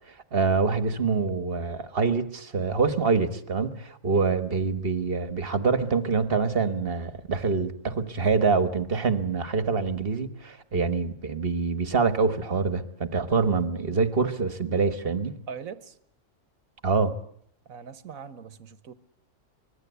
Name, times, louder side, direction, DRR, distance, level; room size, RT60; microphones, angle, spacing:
voice 1, 0.1-15.3 16.8-17.2, right 4 dB, 45° right, 1.6 m, -25 dB
voice 2, 15.5-16.0 17.7-18.9, right 6 dB, 80° right, 1.6 m, -41 dB
25.0 x 20.0 x 8.2 m
omnidirectional pair, 1.4 m